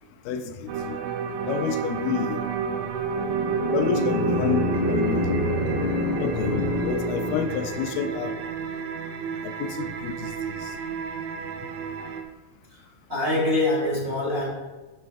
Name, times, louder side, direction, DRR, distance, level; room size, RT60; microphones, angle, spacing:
voice 1, 0.3-1.0 1.4-2.5 3.7-5.3 6.2-8.3 9.4-10.7, left 7 dB, 90° left, 8 dB, 2.3 m, -29 dB
sound 1, 0.7-12.2, right 6 dB, 75° right, 2.0 m, -31 dB
sound 2, 3.0-8.0, left 1 dB, 45° left, 1.4 m, -27 dB
voice 2, 13.1-14.5, left 2 dB, 20° right, -6 dB, 2.7 m, -24 dB
11.0 x 8.9 x 2.3 m, 1.2 s
omnidirectional pair, 3.8 m